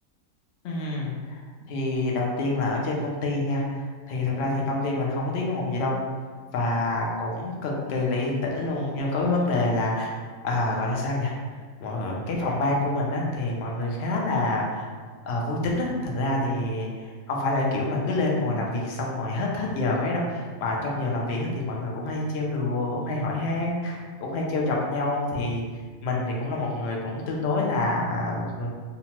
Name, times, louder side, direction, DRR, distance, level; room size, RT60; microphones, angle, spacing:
voice 1, 0.6-6.0 6.5-11.3 11.8-14.9 15.3-25.6 26.0-28.7, left 2 dB, 65° left, -2 dB, 0.7 m, -27 dB
2.8 x 2.1 x 2.9 m, 1.5 s
omnidirectional pair, 1.5 m